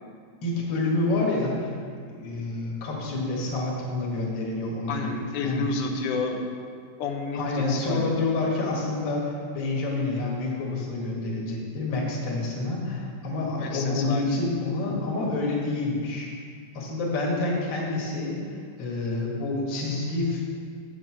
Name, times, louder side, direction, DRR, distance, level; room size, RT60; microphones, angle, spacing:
voice 1, 0.4-1.7 2.1-5.1 5.4-5.7 7.3-16.3 16.7-18.4 18.8-20.4, left 2 dB, 45° left, -3 dB, 1.9 m, -28 dB
voice 2, 4.9-6.5 7.0-8.3 13.6-14.3, left 4 dB, 85° left, 2 dB, 2.3 m, -30 dB
7.9 x 6.2 x 6.1 m, 2.1 s
omnidirectional pair, 3.5 m